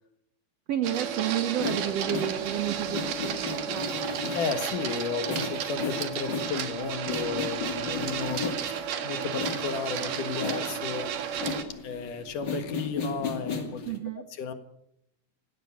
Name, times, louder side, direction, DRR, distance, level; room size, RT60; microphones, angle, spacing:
voice 1, 0.7-4.1 13.8-14.2, right 10 dB, 85° right, 11 dB, 1.4 m, -31 dB
Printer, 0.8-11.6, right 8 dB, 65° right, 3.2 m, -33 dB
sound 1, 1.6-8.9 9.3-14.0, left 5 dB, 30° left, 2.6 m, -35 dB
voice 2, 4.3-11.4 11.8-13.8 14.4-14.5, left 5 dB, 60° left, 9 dB, 3.0 m, -33 dB
19.0 x 16.0 x 8.5 m, 0.77 s
omnidirectional pair, 4.3 m